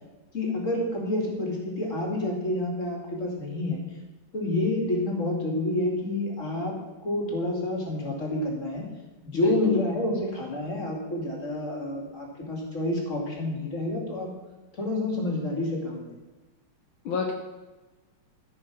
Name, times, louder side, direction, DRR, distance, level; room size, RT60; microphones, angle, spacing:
voice 1, 0.3-3.8 4.3-8.8 9.2-14.3 14.8-16.1, left 1 dB, 35° left, 0 dB, 2.8 m, -29 dB
voice 2, 9.3-9.8 17.1-17.3, left 5 dB, 70° left, 2 dB, 1.8 m, -27 dB
14.5 x 6.3 x 6.1 m, 1.2 s
omnidirectional pair, 2.3 m